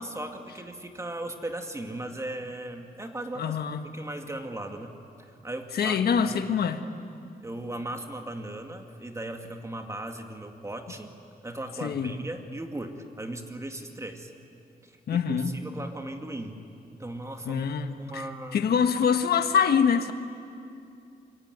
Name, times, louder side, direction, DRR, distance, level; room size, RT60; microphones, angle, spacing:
voice 1, 0.0-3.6 3.8-6.6 7.4-11.1 11.4-14.3 14.8-15.4 15.6-16.6 17.0-17.6 18.0-18.6, right 1 dB, 20° right, 4 dB, 2.3 m, -37 dB
voice 2, 3.3-3.8 5.7-6.8 11.8-12.1 15.1-15.5 17.4-18.3 18.5-20.1, left 7 dB, 90° left, 8 dB, 1.5 m, -24 dB
26.5 x 24.0 x 9.4 m, 2.5 s
wide cardioid pair, 115°, 16 cm